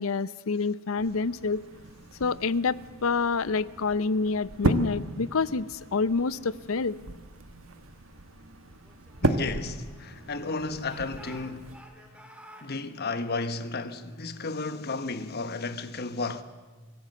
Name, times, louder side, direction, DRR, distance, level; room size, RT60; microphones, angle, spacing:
voice 1, 0.0-1.6 2.2-7.0, left 4 dB, 85° left, 0.6 m, -27 dB
sound 1, 1.0-11.8, right 2 dB, 80° right, 1.5 m, -35 dB
Speech / Shout, 8.8-10.4 10.8-12.7, right 1 dB, 5° right, 2.3 m, -51 dB
voice 2, 9.2-11.8 12.6-16.4, left 3 dB, 50° left, 1.2 m, -33 dB
25.0 x 15.0 x 7.7 m
head